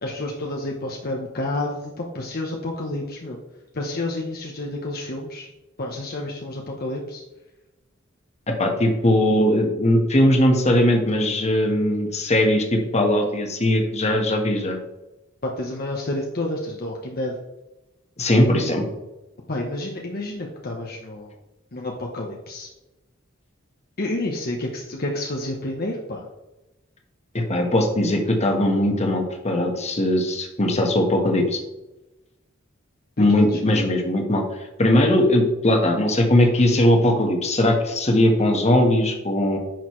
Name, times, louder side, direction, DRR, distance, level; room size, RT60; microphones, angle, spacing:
voice 1, 0.0-3.4 3.7-5.5 5.8-7.2 15.4-17.4 19.5-21.3 21.7-22.7 24.0-26.3 33.2-33.6, left 1 dB, 50° left, 0 dB, 1.0 m, -29 dB
voice 2, 8.6-14.8 18.2-18.9 27.3-31.6 33.2-34.4 34.8-39.6, left 1 dB, 35° left, 3 dB, 1.4 m, -19 dB
10.5 x 6.4 x 3.2 m, 0.99 s
head